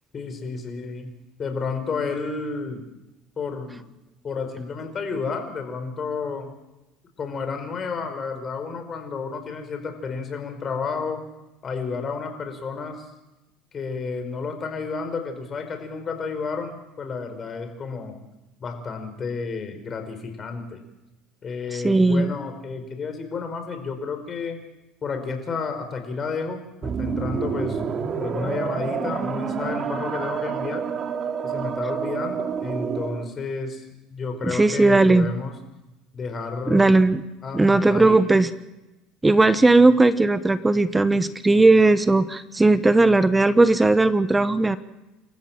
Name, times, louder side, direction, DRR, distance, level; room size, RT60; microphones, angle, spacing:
voice 1, 0.1-1.1 1.4-2.8 3.4-3.8 4.2-6.5 7.2-11.2 11.6-13.1 13.7-18.1 18.6-20.8 21.4-24.6 25.0-27.8 28.2-30.8 31.4-33.8 34.1-35.5 36.1-37.0 37.4-38.2, left 4 dB, 35° left, 6 dB, 5.1 m, -31 dB
voice 2, 21.7-22.4 34.5-35.3 36.7-37.2 37.5-38.5 39.2-44.8, right 2 dB, 10° right, 13 dB, 1.0 m, -17 dB
sound 1, 26.8-33.3, right 6 dB, 40° right, 2.5 m, -28 dB
28.5 x 14.5 x 7.7 m, 0.99 s
supercardioid pair, 105°, 0 cm